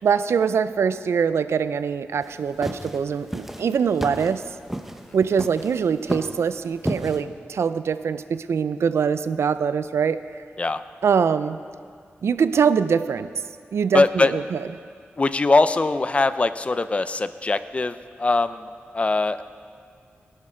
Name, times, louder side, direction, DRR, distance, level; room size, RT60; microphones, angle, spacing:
voice 1, 0.0-4.4 5.1-10.4 11.0-11.6 12.2-13.3 13.7-14.7, right 6 dB, 80° right, 13 dB, 0.4 m, -23 dB
sound 1, 2.2-7.2, right 1 dB, 5° right, 0.8 m, -32 dB
voice 2, 13.9-14.3 15.2-18.7 18.9-19.4, left 3 dB, 30° left, 13 dB, 0.4 m, -21 dB
19.0 x 11.0 x 4.4 m, 2.2 s
wide cardioid pair, 135°, 4 cm